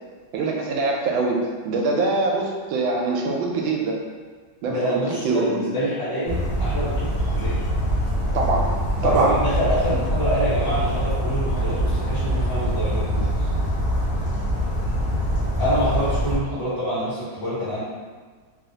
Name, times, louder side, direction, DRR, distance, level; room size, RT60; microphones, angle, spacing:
voice 1, 0.3-4.0 4.6-5.6 8.3-9.4, right 3 dB, 80° right, 0 dB, 1.3 m, -24 dB
voice 2, 4.7-7.6 9.0-13.5 15.6-17.8, equal, 45° left, -11 dB, 1.3 m, -26 dB
Bird vocalization bird call bird song, 6.3-16.4, equal, 90° left, 0.5 m, -24 dB
3.4 x 2.4 x 2.7 m, 1.5 s
omnidirectional pair, 2.2 m